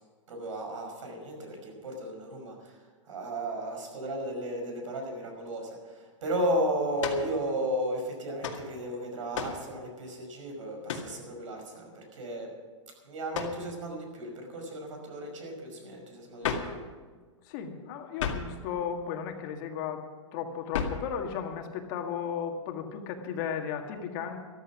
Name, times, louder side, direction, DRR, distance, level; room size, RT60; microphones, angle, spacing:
voice 1, 0.3-12.5 13.0-16.8, right 1 dB, 80° right, 3 dB, 5.5 m, -34 dB
sound 1, 7.0-7.3 8.4-8.7 9.3-9.7 10.9-11.2 13.3-13.6 16.4-16.8 18.2-18.6 20.7-21.1, left 6 dB, 80° left, 2.1 m, -33 dB
voice 2, 17.5-20.0 20.3-24.4, left 7 dB, 40° left, 4 dB, 1.8 m, -35 dB
14.0 x 13.0 x 6.1 m, 1.5 s
hypercardioid pair, 155°, 16 cm